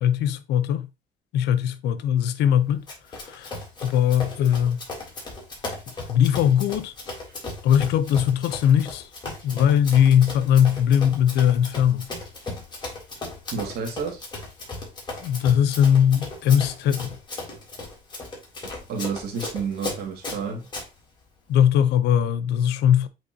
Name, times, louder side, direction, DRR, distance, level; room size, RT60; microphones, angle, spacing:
voice 1, 0.0-0.9 1.3-2.8 3.2-3.5 3.8-4.8 6.1-6.9 7.6-9.1 9.4-12.1 15.2-17.1 21.5-23.1, left 9 dB, 80° left, 0.8 m, -20 dB
Run, 2.9-20.9, left 2 dB, 25° left, 3.8 m, -36 dB
voice 2, 13.5-14.3 18.6-20.7, right 5 dB, 70° right, 2.3 m, -31 dB
8.2 x 4.4 x 2.8 m
cardioid pair, 110°, 17 cm